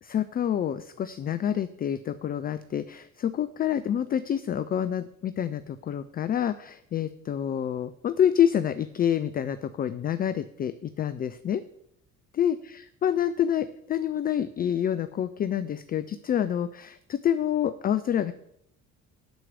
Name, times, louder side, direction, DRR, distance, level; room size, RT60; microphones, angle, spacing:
voice 1, 0.0-11.6 12.4-18.3, left 9 dB, 20° left, 12 dB, 0.4 m, -27 dB
11.5 x 4.6 x 7.9 m, 0.75 s
figure-of-eight pair, 50°, 43 cm